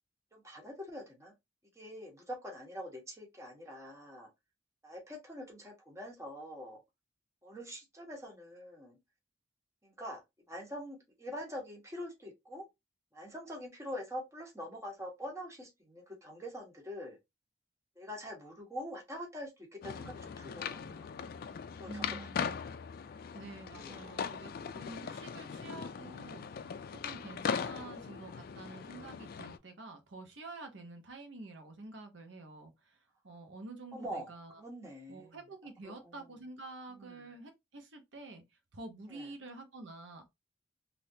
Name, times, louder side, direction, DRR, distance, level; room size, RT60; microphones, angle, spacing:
voice 1, 0.3-1.3 1.7-4.3 4.8-6.8 7.4-9.0 9.8-10.2 10.5-12.6 13.1-17.2 18.0-21.1 21.8-22.6 23.7-24.1 33.9-34.3 34.6-35.4 35.8-36.2 37.0-37.1 39.1-39.3, equal, 15° right, 1.2 m, -44 dB
sound 1, 19.8-29.6, left 6 dB, 50° left, 0.3 m, -40 dB
voice 2, 21.9-22.6 23.3-26.8 27.0-34.6 35.1-38.4 38.7-40.3, right 2 dB, 80° right, 0.9 m, -48 dB
3.4 x 2.6 x 2.7 m
head